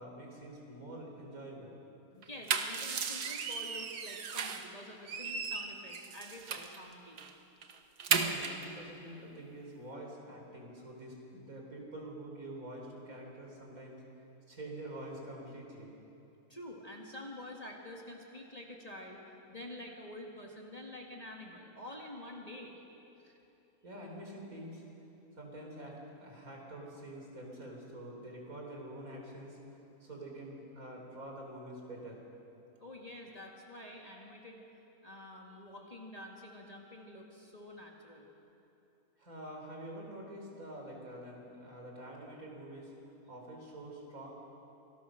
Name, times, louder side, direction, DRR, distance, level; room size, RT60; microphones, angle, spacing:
voice 1, 0.0-1.8 8.1-14.0 14.5-16.0 23.8-24.8 25.4-32.2 34.1-34.3 39.2-42.9 43.3-44.3, right 1 dB, 60° right, 0 dB, 4.2 m, -46 dB
voice 2, 2.1-7.3 16.5-19.2 19.5-22.8 23.2-23.4 32.8-34.6 35.0-38.3, left 1 dB, 25° left, -1 dB, 2.0 m, -48 dB
sound 1, 2.2-4.7 5.1-6.8 7.2-7.3 7.6-8.7, right 6 dB, 85° right, 1.7 m, -35 dB
26.5 x 17.5 x 6.5 m, 2.9 s
omnidirectional pair, 1.7 m